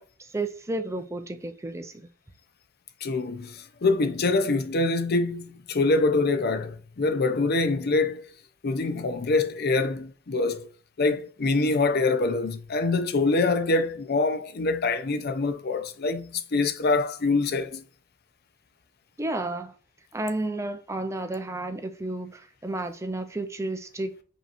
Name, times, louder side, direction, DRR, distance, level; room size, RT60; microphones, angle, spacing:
voice 1, 0.0-2.1 19.2-19.7 20.1-24.1, right 2 dB, 15° right, 0.4 m, -32 dB
voice 2, 3.0-8.3 8.6-10.7 11.0-17.8, left 3 dB, 50° left, 0.5 m, -25 dB
5.5 x 2.8 x 2.4 m
head